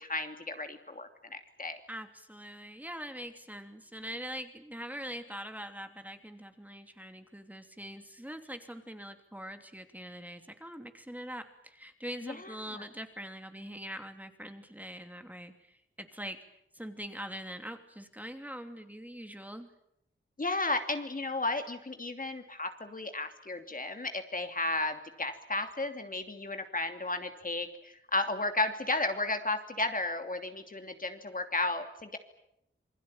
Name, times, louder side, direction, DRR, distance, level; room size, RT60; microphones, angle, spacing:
voice 1, 0.0-1.8 12.2-12.8 20.4-32.2, left 2 dB, 40° left, 6 dB, 2.8 m, -34 dB
voice 2, 1.9-16.4 16.7-19.7, equal, 5° right, 6 dB, 2.9 m, -43 dB
28.0 x 21.5 x 9.0 m, 0.79 s
wide cardioid pair, 75°, 21 cm